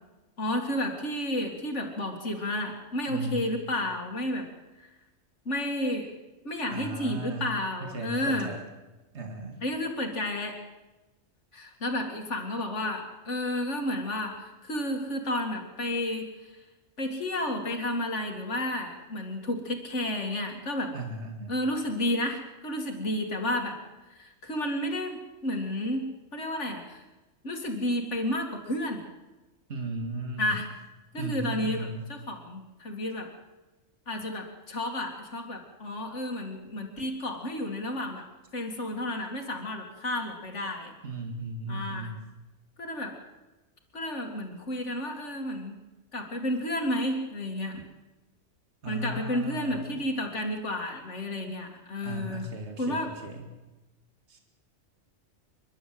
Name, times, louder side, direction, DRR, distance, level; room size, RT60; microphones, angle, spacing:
voice 1, 0.4-4.5 4.8-4.9 5.5-6.1 6.4-8.5 9.6-10.6 11.5-16.6 17.0-20.9 21.5-23.8 24.1-26.0 26.3-27.0 27.4-29.0 30.4-30.7 31.1-33.3 34.1-38.2 38.5-40.9 41.7-42.1 42.8-43.2 43.9-45.8 46.1-47.8 48.9-52.5 52.8-53.1, left 1 dB, 75° left, 3 dB, 2.7 m, -31 dB
voice 2, 3.1-3.5 6.7-8.6 9.1-9.6 20.9-21.5 29.7-30.6 31.2-32.1 41.0-42.2 48.8-49.9 52.0-53.5 54.3-54.4, right 2 dB, 70° right, 4 dB, 2.4 m, -36 dB
30.0 x 12.0 x 7.7 m, 1.1 s
omnidirectional pair, 1.2 m